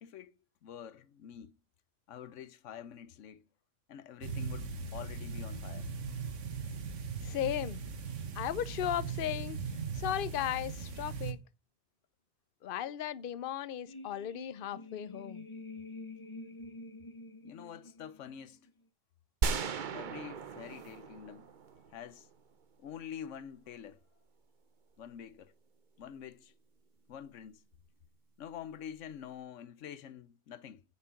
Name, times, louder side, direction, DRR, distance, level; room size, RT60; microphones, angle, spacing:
voice 1, 0.0-1.6 2.1-3.4 3.9-5.9 17.4-18.7 19.9-21.5 21.9-22.3 22.8-24.0 25.0-25.5 26.0-26.5 27.1-27.6 28.4-30.8, left 9 dB, 90° left, 1.1 m, -47 dB
sound 1, 4.2-11.3, right 5 dB, 80° right, 1.4 m, -39 dB
voice 2, 7.2-7.8 8.3-9.6 9.9-11.4 12.6-15.4, left 11 dB, 55° left, 0.8 m, -36 dB
sound 2, 13.9-18.7, left 2 dB, 25° left, 1.4 m, -48 dB
sound 3, 19.4-22.3, right 5 dB, 45° right, 0.8 m, -36 dB
9.5 x 7.5 x 5.8 m
omnidirectional pair, 1.2 m